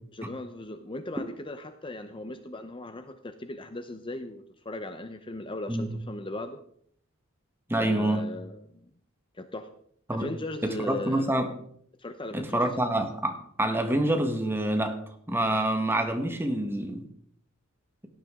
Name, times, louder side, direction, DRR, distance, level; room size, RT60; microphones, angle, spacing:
voice 1, 0.1-6.6 7.8-8.9 9.3-9.7 10.1-11.3 12.0-12.7, left 2 dB, 25° left, 8 dB, 0.8 m, -38 dB
voice 2, 7.7-8.2 10.1-10.3 10.6-11.5 12.3-15.0 15.3-17.1, right 1 dB, 10° right, 5 dB, 1.5 m, -27 dB
17.0 x 10.5 x 3.7 m, 0.64 s
head